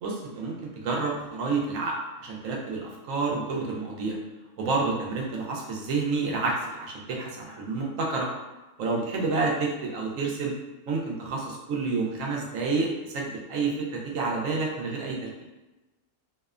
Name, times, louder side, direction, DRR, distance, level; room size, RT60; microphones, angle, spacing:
voice 1, 0.0-4.2 4.6-8.3 8.8-10.5 10.9-15.3, right 3 dB, 85° right, -1 dB, 1.0 m, -29 dB
2.7 x 2.1 x 2.3 m, 1.1 s
omnidirectional pair, 1.3 m